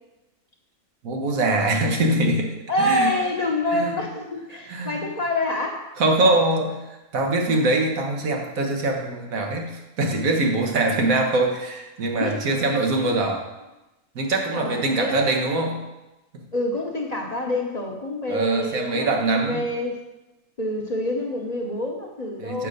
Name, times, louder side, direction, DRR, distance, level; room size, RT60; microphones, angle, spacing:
voice 1, 1.0-2.5 2.8-3.1 3.7-4.0 4.7-5.0 6.0-6.8 7.1-13.4 14.1-15.8 16.3-16.4 18.3-19.6 22.4-22.7, right 2 dB, 85° right, 2 dB, 1.6 m, -23 dB
voice 2, 2.7-5.9 12.2-12.5 13.0-13.2 14.5-15.3 16.5-20.0 20.6-22.7, left 1 dB, 35° left, 1 dB, 0.9 m, -27 dB
6.7 x 5.1 x 6.5 m, 1.0 s
omnidirectional pair, 1.4 m